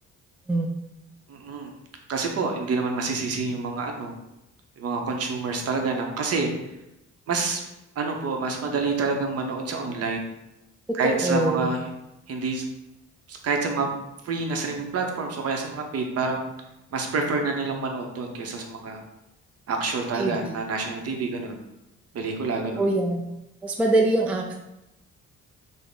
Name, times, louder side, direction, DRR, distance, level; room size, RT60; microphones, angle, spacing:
voice 1, 1.3-1.7 2.1-4.1 4.8-6.5 7.3-7.6 8.0-10.2 10.9-11.8 12.3-12.6 13.3-13.9 14.2-16.4 16.9-19.0 19.7-21.6 22.1-22.8, right 4 dB, 55° right, 3 dB, 0.7 m, -27 dB
voice 2, 11.0-11.7 20.1-20.5 22.8-23.2 23.6-24.6, right 2 dB, 5° right, 1 dB, 0.3 m, -23 dB
3.4 x 2.0 x 3.8 m, 0.90 s
cardioid pair, 90°, 30 cm